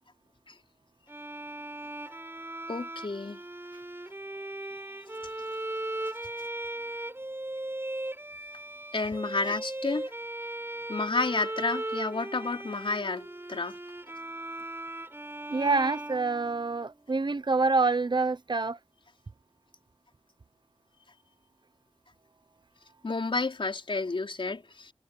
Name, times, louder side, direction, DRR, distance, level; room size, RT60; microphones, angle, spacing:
Bowed string instrument, 1.1-16.9, right 1 dB, 25° right, 4.5 m, -38 dB
voice 1, 2.7-3.4 8.9-10.1 10.9-13.8 23.0-24.9, left 3 dB, 60° left, 4.8 m, -31 dB
voice 2, 15.5-18.8, right 3 dB, 50° right, 1.0 m, -26 dB
wide cardioid pair, 60°, 10 cm